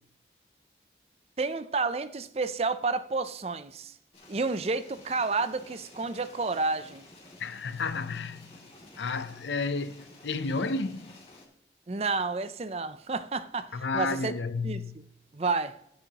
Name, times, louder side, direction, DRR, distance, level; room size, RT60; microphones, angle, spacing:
voice 1, 1.4-3.9 4.3-7.1 11.9-14.3 14.6-15.0 15.3-15.8, right 4 dB, 35° right, 0.5 m, -30 dB
sound 1, 4.1-11.4, left 2 dB, 35° left, 2.6 m, -52 dB
voice 2, 7.4-8.4 9.0-11.1 13.7-14.9, left 3 dB, 85° left, 0.7 m, -31 dB
14.5 x 9.0 x 2.9 m
head